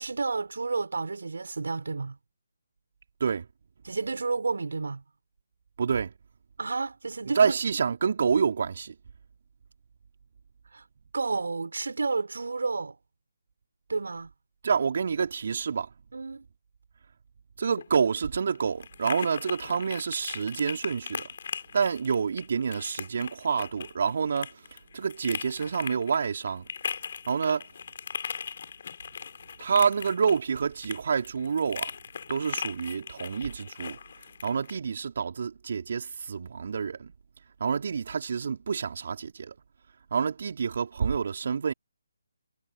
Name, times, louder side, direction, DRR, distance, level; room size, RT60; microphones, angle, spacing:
voice 1, 0.0-2.2 3.8-5.0 6.6-7.6 10.7-10.9 11.1-13.0 13.9-14.3 16.1-16.4, right 4 dB, 70° right, 3.5 m, -31 dB
voice 2, 5.8-6.1 7.4-8.9 14.6-15.9 17.6-21.3 21.7-24.6 24.9-26.6 27.3-27.7 29.6-31.9 32.3-34.0 34.4-37.1 37.6-39.5 40.1-41.7, right 6 dB, 55° right, 3.7 m, -28 dB
sound 1, 17.6-34.8, left 6 dB, 50° left, 7.1 m, -39 dB
figure-of-eight pair, 150°, 0 cm